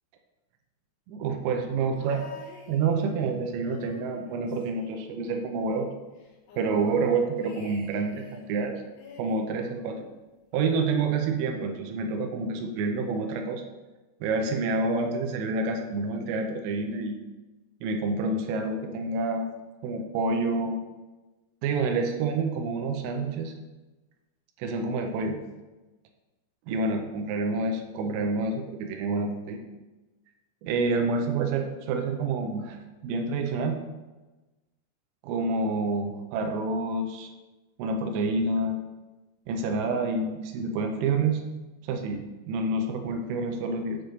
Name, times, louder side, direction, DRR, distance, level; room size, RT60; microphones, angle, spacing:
voice 1, 1.1-2.3 2.7-5.9 6.6-8.7 9.2-10.0 10.5-13.6 14.2-17.2 17.8-19.5 19.8-20.8 21.6-23.5 24.6-25.4 26.7-29.6 30.6-33.8 35.2-37.3 37.8-38.8 39.5-41.4 41.8-44.0, right 3 dB, 90° right, 3 dB, 3.4 m, -28 dB
sound 1, 2.0-3.3 3.6-5.5 5.8-5.9 6.2-8.5 9.0-10.2 11.1-11.2, left 4 dB, 70° left, 2.9 m, -49 dB
8.8 x 3.1 x 6.4 m, 1.1 s
omnidirectional pair, 5.7 m